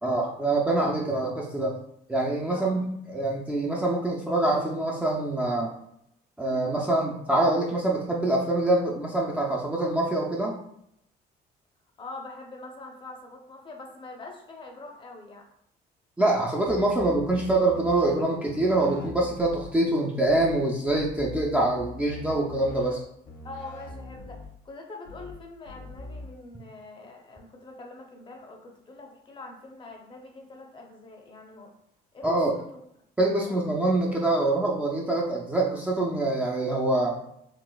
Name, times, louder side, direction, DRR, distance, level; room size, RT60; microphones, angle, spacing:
voice 1, 0.0-1.8 2.1-5.7 6.4-10.6 16.2-23.0 32.2-32.5 33.2-37.2, right 2 dB, 10° right, -3 dB, 0.4 m, -25 dB
voice 2, 2.5-2.8 12.0-15.5 23.4-31.7 32.1-32.8 33.4-33.7, left 2 dB, 30° left, 1 dB, 0.6 m, -44 dB
sound 1, 16.7-18.1 18.4-19.7 20.2-20.5 20.8-22.9 23.2-24.5 25.0-25.3 25.6-26.2, left 2 dB, 75° left, 0.9 m, -42 dB
4.0 x 2.4 x 2.3 m, 0.74 s
cardioid pair, 110°, 17 cm